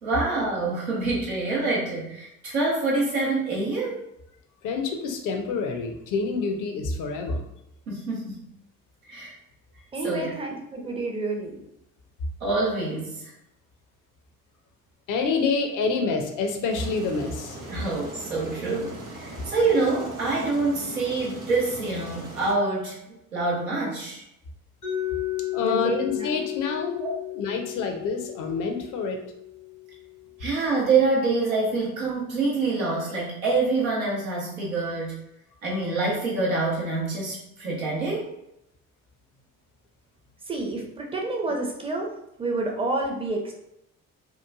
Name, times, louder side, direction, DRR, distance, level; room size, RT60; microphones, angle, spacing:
voice 1, 0.0-4.0 7.9-8.4 9.1-9.3 10.0-10.3 12.4-13.3 17.7-24.2 27.0-27.1 30.4-35.2 35.6-38.3, right 3 dB, 85° right, -5 dB, 0.8 m, -26 dB
voice 2, 4.6-7.4 15.1-17.6 25.5-27.0 27.3-29.2, left 4 dB, 50° left, 4 dB, 0.6 m, -27 dB
voice 3, 9.9-11.6 25.6-26.4 40.4-43.5, right 2 dB, 15° right, 1 dB, 0.6 m, -29 dB
Aircraft, 16.7-22.5, right 2 dB, 50° right, 0.9 m, -40 dB
Mallet percussion, 24.8-30.7, left 14 dB, 90° left, 1.2 m, -34 dB
3.0 x 2.2 x 2.3 m, 0.83 s
figure-of-eight pair, 45°, 41 cm